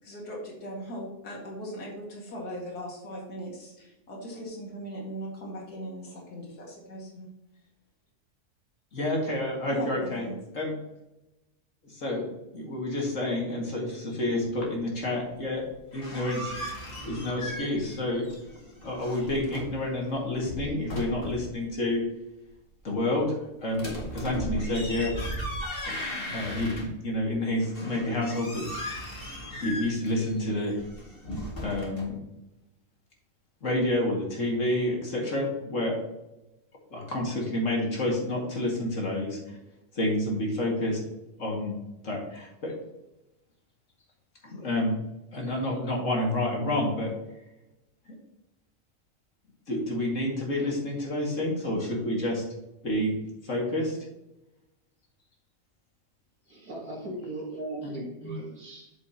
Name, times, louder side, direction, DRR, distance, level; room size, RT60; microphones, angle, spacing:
voice 1, 0.0-7.3 9.6-10.4, equal, 80° left, -2 dB, 2.5 m, -39 dB
voice 2, 8.9-10.3 10.5-10.7 11.8-12.2 12.5-16.6 17.0-18.3 18.8-22.0 22.8-23.3 23.6-23.9 24.1-25.3 25.8-26.0 26.3-28.6 28.9-29.2 29.6-30.7 31.6-32.1 33.6-36.0 36.9-39.6 39.9-41.0 41.4-41.7 42.0-42.7 44.4-44.9 45.3-47.1 49.7-52.4 52.8-53.1 53.4-54.0 58.2-58.3, left 1 dB, 55° left, -1 dB, 2.4 m, -29 dB
sound 1, 15.7-18.0 18.2-19.8 20.3-21.5 23.7-27.2 27.6-32.0, equal, 35° left, 2.3 m, -37 dB
voice 3, 56.5-58.9, right 2 dB, 75° right, -5 dB, 2.1 m, -38 dB
8.4 x 6.9 x 2.9 m, 0.94 s
omnidirectional pair, 1.6 m